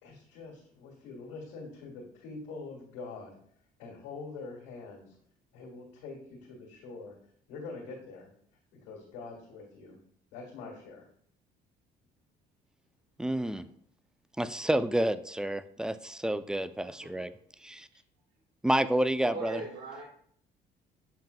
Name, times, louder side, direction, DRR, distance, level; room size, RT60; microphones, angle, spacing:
voice 1, 0.0-3.4 3.8-5.2 5.5-7.1 7.5-8.3 8.7-10.0 10.3-11.1, left 4 dB, 85° left, -2 dB, 1.9 m, -44 dB
voice 2, 13.2-13.7 14.4-17.3 17.6-17.9 18.6-19.6, right 1 dB, 5° right, 13 dB, 0.4 m, -29 dB
voice 3, 19.1-20.0, right 4 dB, 75° right, -2 dB, 1.4 m, -39 dB
7.2 x 5.8 x 2.3 m, 0.64 s
supercardioid pair, 65°, 19 cm